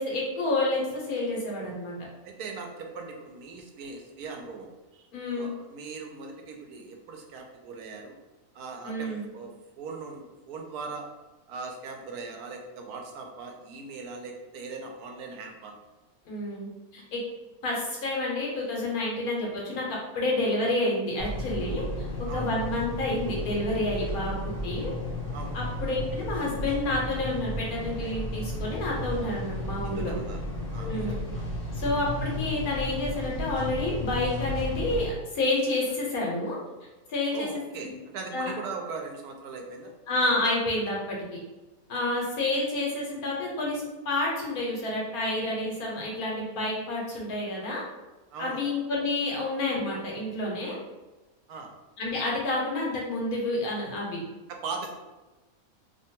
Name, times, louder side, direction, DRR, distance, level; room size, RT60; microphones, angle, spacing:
voice 1, 0.0-2.0 5.1-5.5 8.8-9.2 16.3-17.2 17.6-19.9 20.1-22.1 22.3-24.9 25.5-30.1 30.8-31.2 31.7-36.6 37.1-37.9 38.3-38.5 40.1-41.4 41.9-47.8 48.4-50.8 52.0-54.2, left 2 dB, 80° left, -3 dB, 1.3 m, -29 dB
voice 2, 2.2-8.1 8.5-11.0 11.5-15.7 22.3-22.6 25.3-25.6 29.8-30.4 30.7-31.4 37.3-39.9 41.9-42.1 48.3-48.7 51.5-51.7 54.5-54.9, right 4 dB, 85° right, 2 dB, 1.1 m, -40 dB
sound 1, 21.2-35.1, left 1 dB, 30° left, 1.0 m, -33 dB
2.9 x 2.2 x 2.8 m, 1.1 s
omnidirectional pair, 1.6 m